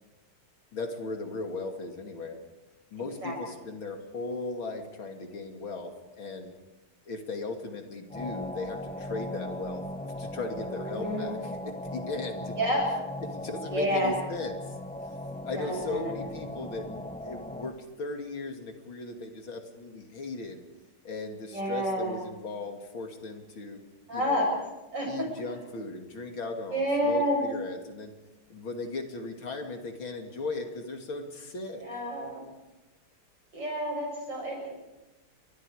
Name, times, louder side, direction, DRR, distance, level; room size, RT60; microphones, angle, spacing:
voice 1, 0.7-2.4 2.9-6.5 7.1-11.4 11.6-12.5 13.3-14.7 15.4-16.9 17.2-20.6 21.0-23.8 24.1-24.4 25.1-28.1 28.5-31.8, left 3 dB, 65° left, 4 dB, 3.2 m, -37 dB
sound 1, 8.1-17.7, left 1 dB, 5° left, 0.9 m, -38 dB
voice 2, 10.7-11.3 12.6-12.9 13.7-14.1 15.6-16.1 21.5-22.2 24.1-24.5 24.9-25.3 26.7-27.4 31.8-32.4 33.5-34.7, equal, 55° right, -1 dB, 8.7 m, -29 dB
29.5 x 24.0 x 5.0 m, 1.1 s
omnidirectional pair, 2.3 m